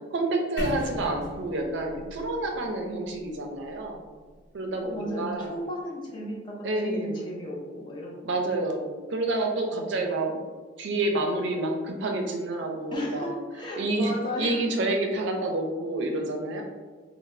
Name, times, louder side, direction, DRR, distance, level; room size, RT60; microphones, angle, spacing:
voice 1, 0.1-4.0 4.5-5.5 6.6-7.2 8.2-10.4 10.8-13.3 13.7-16.6, right 2 dB, 65° right, 2 dB, 0.4 m, -28 dB
sound 1, 0.6-4.5, equal, 60° left, 1.2 m, -39 dB
voice 2, 4.8-8.6 9.7-10.0 12.9-14.6 16.1-16.2, equal, 25° left, -3 dB, 0.5 m, -35 dB
3.8 x 2.0 x 2.6 m, 1.4 s
head